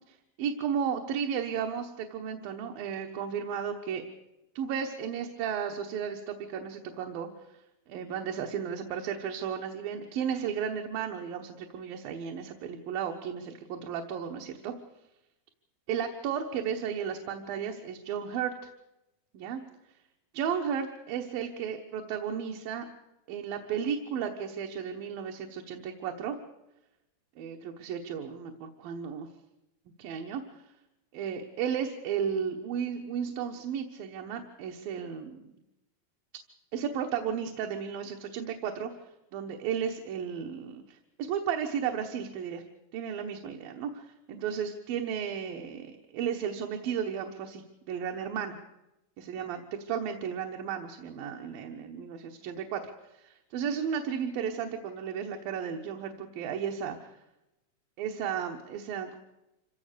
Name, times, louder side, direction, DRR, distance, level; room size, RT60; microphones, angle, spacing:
voice 1, 0.1-4.0 4.6-7.3 7.9-14.7 15.9-18.7 19.3-19.6 20.3-22.9 23.3-26.4 27.4-29.3 30.0-30.4 31.1-35.5 36.7-38.9 39.3-42.6 42.9-48.6 49.2-49.6 49.9-52.8 53.1-57.1 58.0-59.2, right 7 dB, 75° right, 3 dB, 3.0 m, -34 dB
26.0 x 16.5 x 6.8 m, 0.93 s
omnidirectional pair, 4.2 m